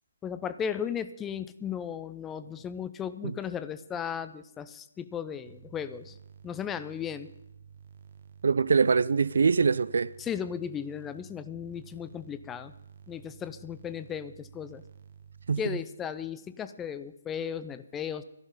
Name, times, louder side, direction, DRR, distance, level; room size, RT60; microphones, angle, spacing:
voice 1, 0.2-6.2 6.4-7.3 10.2-12.7 13.1-14.8 15.6-18.2, left 8 dB, 10° left, 0.5 m, -36 dB
sound 1, 5.5-15.6, right 7 dB, 40° right, 1.0 m, -52 dB
voice 2, 8.4-10.1 15.5-15.8, right 5 dB, 55° right, 0.4 m, -24 dB
13.0 x 11.5 x 5.5 m
figure-of-eight pair, 140°, 0 cm